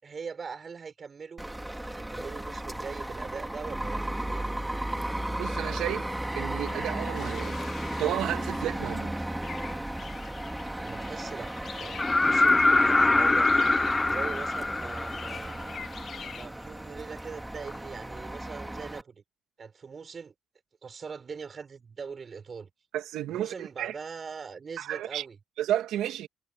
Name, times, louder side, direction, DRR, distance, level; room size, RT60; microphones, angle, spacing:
voice 1, 0.0-1.4 1.9-4.8 10.8-13.5 14.1-15.8 16.3-19.2 19.6-20.3 20.8-22.7 23.3-25.4, right 5 dB, 40° right, 6.5 m, -41 dB
sound 1, 1.4-19.0, right 1 dB, 10° right, 2.5 m, -35 dB
voice 2, 5.4-6.1 6.3-7.6 8.0-9.1 22.9-23.9 24.8-25.2 25.6-26.3, right 12 dB, 85° right, 2.2 m, -32 dB
sound 2, 6.6-16.5, left 7 dB, 55° left, 3.0 m, -46 dB
sound 3, 12.0-15.8 17.7-17.8, left 2 dB, 20° left, 0.8 m, -23 dB
cardioid pair, 90°, 0 cm